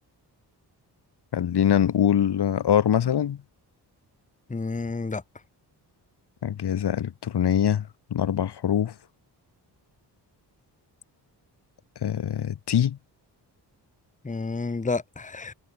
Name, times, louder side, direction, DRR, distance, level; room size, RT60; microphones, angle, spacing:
voice 1, 1.3-3.4 6.4-8.9 12.0-13.0, left 9 dB, 65° left, 3.5 m, -23 dB
voice 2, 4.5-5.2 14.2-15.5, left 3 dB, 15° left, 1.9 m, -30 dB
wide cardioid pair, 165°, 42 cm